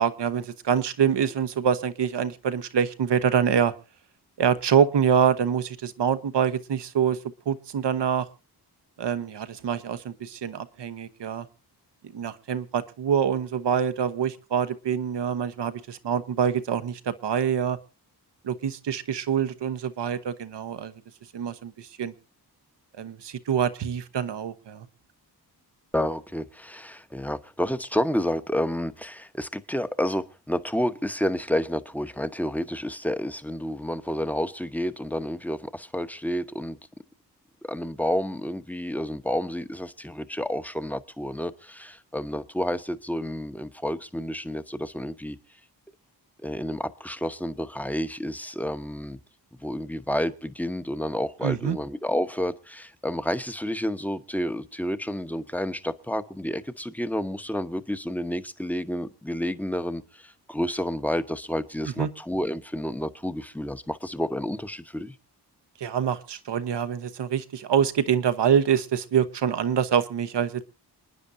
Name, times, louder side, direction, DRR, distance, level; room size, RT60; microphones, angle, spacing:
voice 1, 0.0-3.7 4.4-7.2 7.5-8.3 9.0-11.5 12.0-17.8 18.4-20.9 21.3-22.1 23.0-24.9 51.4-51.8 62.0-62.1 65.8-70.6, right 8 dB, 85° right, 1.0 m, -25 dB
voice 2, 25.9-36.8 37.6-45.4 46.4-49.2 49.6-65.1, equal, 5° left, 0.9 m, -30 dB
28.5 x 9.8 x 2.6 m
cardioid pair, 75°, 41 cm